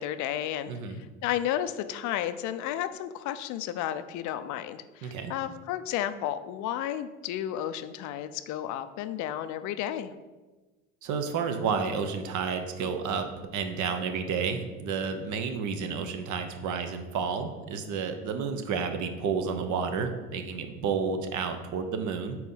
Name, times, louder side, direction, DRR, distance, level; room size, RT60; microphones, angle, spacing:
voice 1, 0.0-0.8 1.2-10.1, left 11 dB, 55° left, 11 dB, 0.5 m, -32 dB
voice 2, 0.7-1.0 5.0-5.3 11.0-22.4, right 5 dB, 55° right, 7 dB, 0.9 m, -31 dB
4.6 x 3.9 x 5.5 m, 1.2 s
supercardioid pair, 85°, 35 cm